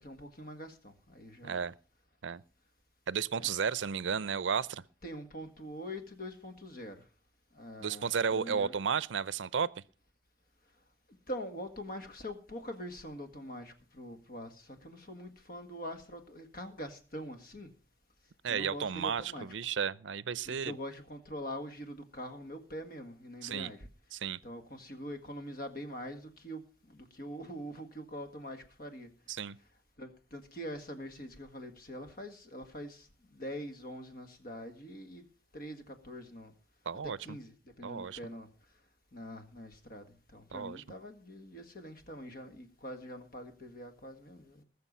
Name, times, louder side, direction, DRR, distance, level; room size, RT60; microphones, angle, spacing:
voice 1, 0.0-1.7 3.3-3.5 5.0-7.0 7.5-8.7 11.3-17.7 18.5-19.5 20.4-23.9 24.4-29.1 30.0-35.2 35.5-36.5 37.2-38.5 39.1-40.1 40.3-44.6, equal, 50° left, 1.8 m, -44 dB
voice 2, 1.4-1.7 2.2-2.4 3.1-4.8 7.8-9.7 18.4-20.7 23.4-23.7 24.1-24.4 29.3-29.6 36.9-37.2 37.8-38.2 40.5-40.8, right 6 dB, 80° right, 0.6 m, -33 dB
20.0 x 6.8 x 5.5 m
head